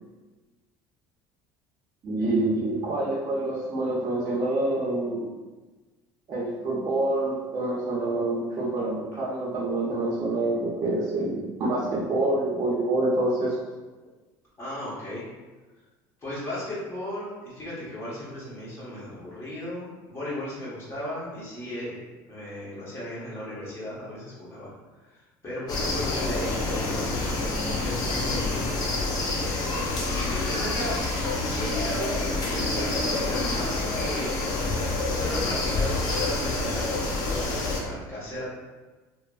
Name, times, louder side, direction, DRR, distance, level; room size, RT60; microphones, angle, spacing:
voice 1, 2.0-5.3 6.3-13.6, right 2 dB, 40° right, -8 dB, 0.6 m, -27 dB
voice 2, 14.6-15.3 16.2-22.0 22.2-24.7 25.0-29.1 29.8-31.0 31.4-34.5 34.8-37.1 37.5-38.4, left 1 dB, 25° left, -9 dB, 1.4 m, -36 dB
sound 1, 25.7-37.8, left 2 dB, 45° left, 0.7 m, -27 dB
3.1 x 2.1 x 2.4 m, 1.2 s
supercardioid pair, 105°, 9 cm